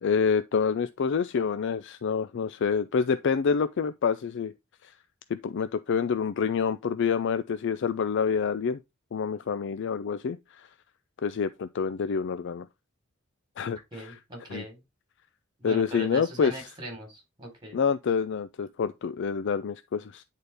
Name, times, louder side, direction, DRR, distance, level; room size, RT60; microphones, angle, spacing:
voice 1, 0.0-4.5 4.8-4.9 5.3-8.8 9.1-10.7 11.2-12.7 13.6-13.8 14.0-14.1 14.5-14.6 15.6-16.5 17.7-20.2, left 6 dB, 60° left, 0.4 m, -27 dB
voice 2, 13.9-14.8 15.6-17.8, right 1 dB, 20° right, 3.7 m, -40 dB
9.5 x 4.2 x 3.4 m
head